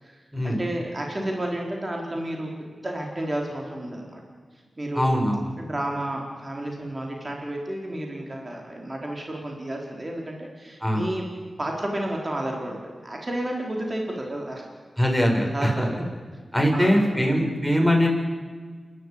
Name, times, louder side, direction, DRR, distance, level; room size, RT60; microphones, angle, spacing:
voice 1, 0.0-4.2 4.8-5.2 5.6-11.3 11.6-14.6 15.3-16.1 16.7-17.3, right 1 dB, 35° right, 0 dB, 4.4 m, -31 dB
voice 2, 4.9-5.5 10.8-11.1 15.0-15.9 16.5-18.1, equal, 5° right, 1 dB, 7.3 m, -22 dB
28.0 x 13.0 x 8.8 m, 1.5 s
cardioid pair, 40°, 0 cm